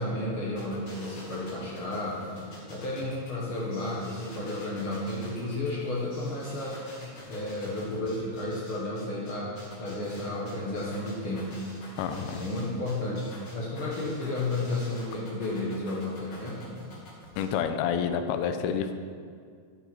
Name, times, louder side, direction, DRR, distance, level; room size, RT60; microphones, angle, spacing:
voice 1, 0.0-6.8 7.3-11.6 12.1-16.7, left 2 dB, 65° left, -5 dB, 1.3 m, -32 dB
sound 1, 0.6-17.6, left 1 dB, 45° left, 3.9 m, -48 dB
voice 2, 12.0-12.4 17.4-18.9, left 7 dB, 80° left, 8 dB, 2.5 m, -28 dB
12.0 x 7.0 x 4.6 m, 2.1 s
omnidirectional pair, 4.5 m